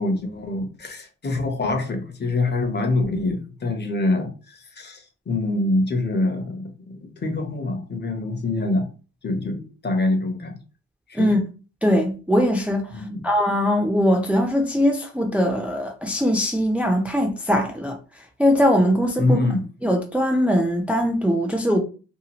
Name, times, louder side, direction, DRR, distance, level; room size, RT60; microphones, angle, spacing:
voice 1, 0.0-8.9 9.2-10.6 11.1-11.4 12.9-13.2 19.2-19.6, left 2 dB, 35° left, 0.8 m, -25 dB
voice 2, 11.8-18.0 18.4-19.4 19.8-21.8, equal, 5° right, 0.5 m, -21 dB
2.8 x 2.3 x 2.9 m
cardioid pair, 90°, 30 cm